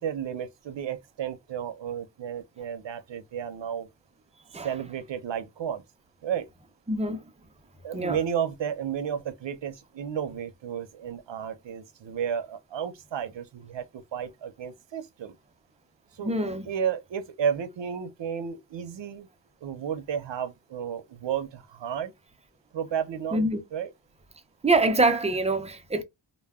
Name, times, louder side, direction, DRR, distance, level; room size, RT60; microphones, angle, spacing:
voice 1, 0.0-3.9 4.6-5.8 6.2-6.5 7.8-15.4 16.1-16.3 16.6-19.3 19.6-22.1 22.7-23.4 23.7-23.9, right 8 dB, 70° right, 0.6 m, -32 dB
voice 2, 6.9-7.2 7.9-8.2 16.2-16.7 23.3-23.6 24.6-26.0, right 2 dB, 15° right, 0.4 m, -24 dB
2.2 x 2.1 x 3.4 m
wide cardioid pair, 110°, 45 cm